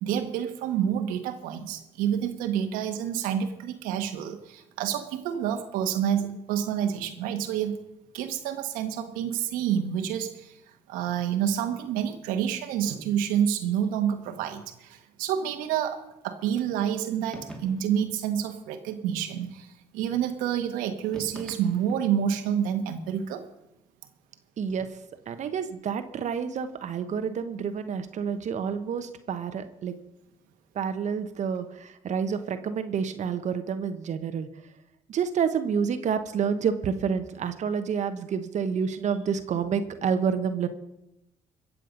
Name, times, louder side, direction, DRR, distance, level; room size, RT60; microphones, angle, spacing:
voice 1, 0.0-7.8 8.1-10.6 10.9-23.4, right 9 dB, 85° right, 7 dB, 1.4 m, -28 dB
sound 1, 17.3-18.1 21.1-22.2, right 1 dB, 5° left, 2.4 m, -43 dB
voice 2, 24.6-25.0 25.3-29.9 30.7-34.5 35.1-40.7, right 6 dB, 60° right, 9 dB, 1.1 m, -29 dB
22.5 x 7.6 x 5.3 m, 0.89 s
supercardioid pair, 65°, 14 cm